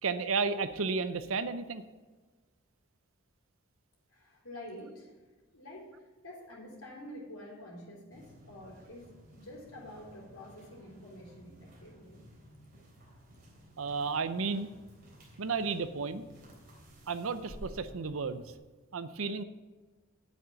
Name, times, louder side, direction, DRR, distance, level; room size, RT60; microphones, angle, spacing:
voice 1, 0.0-1.8 13.8-14.7 15.4-16.3 17.1-18.4 18.9-19.4, right 4 dB, 75° right, 12 dB, 0.6 m, -32 dB
voice 2, 4.1-5.1 5.5-12.2, left 1 dB, 85° left, -3 dB, 3.5 m, -48 dB
sound 1, 8.1-18.6, equal, 45° right, 3.3 m, -54 dB
9.6 x 7.8 x 5.9 m, 1.3 s
head